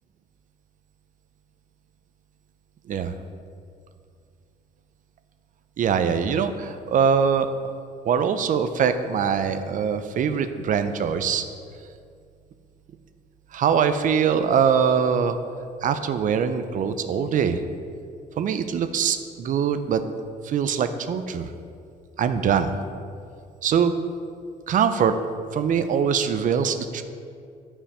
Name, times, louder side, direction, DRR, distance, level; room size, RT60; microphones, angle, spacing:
voice 1, 5.8-7.5 8.1-11.4 13.5-15.4 15.8-17.6 18.4-20.0 20.4-21.5 22.2-22.7 23.6-23.9 24.7-25.2 25.5-27.0, right 7 dB, 50° right, 10 dB, 0.6 m, -22 dB
10.0 x 5.6 x 4.9 m, 2.3 s
cardioid pair, 110°, 17 cm